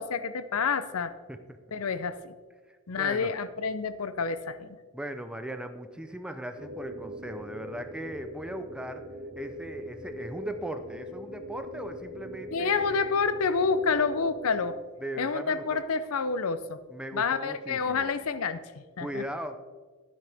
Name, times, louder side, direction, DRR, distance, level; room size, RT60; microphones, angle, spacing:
voice 1, 0.0-1.1 1.7-2.3 2.9-4.8 12.5-14.8 15.2-16.8 17.1-19.2, left 5 dB, 80° left, 13 dB, 0.6 m, -28 dB
voice 2, 2.7-3.3 4.9-9.0 9.4-13.0 15.0-15.8 16.9-18.1 19.0-19.6, right 1 dB, 5° right, 8 dB, 0.6 m, -38 dB
sound 1, 6.6-14.7, equal, 50° right, 2.8 m, -42 dB
12.0 x 9.4 x 3.4 m, 1.4 s
head